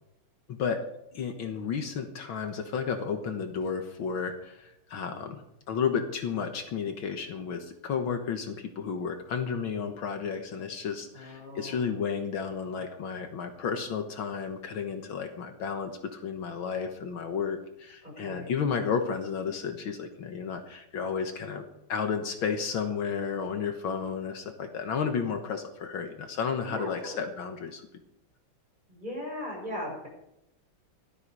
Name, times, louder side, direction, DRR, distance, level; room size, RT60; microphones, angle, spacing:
voice 1, 0.5-0.8 1.1-27.9, left 6 dB, 75° left, 5 dB, 2.0 m, -32 dB
voice 2, 11.1-11.8 18.0-18.5 26.6-27.2 28.9-30.1, left 1 dB, 20° right, -2 dB, 6.2 m, -38 dB
16.5 x 13.0 x 4.9 m, 0.82 s
omnidirectional pair, 2.3 m